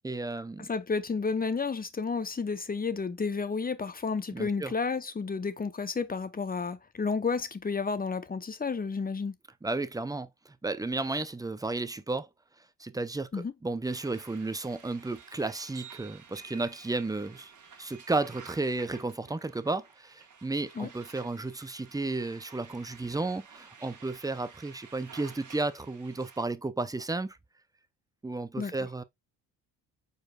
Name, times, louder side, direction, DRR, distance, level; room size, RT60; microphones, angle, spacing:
voice 1, 0.0-0.7 4.3-4.7 9.6-12.3 12.8-17.5 17.8-27.4 28.2-29.0, right 3 dB, 10° right, 0.6 m, -33 dB
voice 2, 0.6-9.4 13.3-13.5 20.8-20.9 28.6-28.9, left 4 dB, 25° left, 0.8 m, -31 dB
sound 1, 13.8-26.4, right 6 dB, 50° right, 1.5 m, -52 dB
5.0 x 4.3 x 2.4 m
supercardioid pair, 60°, 38 cm